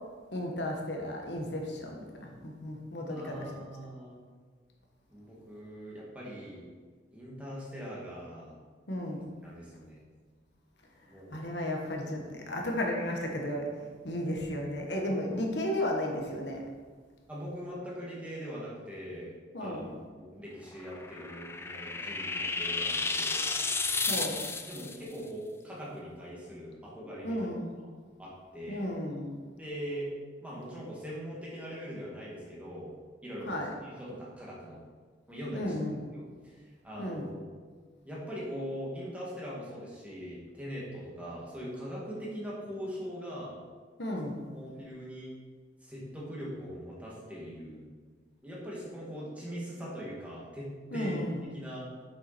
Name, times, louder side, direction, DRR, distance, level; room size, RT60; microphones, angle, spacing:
voice 1, 0.3-3.5 8.9-9.2 11.3-13.7 14.0-16.6 19.5-19.9 24.1-24.4 27.2-27.7 28.7-29.4 33.5-33.7 35.5-36.0 37.0-37.3 44.0-44.5 50.9-51.4, left 1 dB, 65° left, 1 dB, 1.3 m, -34 dB
voice 2, 3.1-4.2 5.1-6.6 7.1-8.5 9.4-10.0 11.1-11.4 17.3-19.3 19.6-19.9 20.2-23.5 24.7-27.5 27.8-27.9 28.2-28.9 29.6-30.1 30.4-32.9 33.2-34.8 35.3-35.7 36.1-37.5 38.0-43.6 44.4-45.3 45.8-47.8 48.4-51.2 51.5-51.9, equal, 10° right, -6 dB, 2.2 m, -41 dB
sound 1, 20.8-25.0, left 3 dB, 15° left, 0.4 m, -32 dB
7.3 x 7.3 x 4.3 m, 1.5 s
head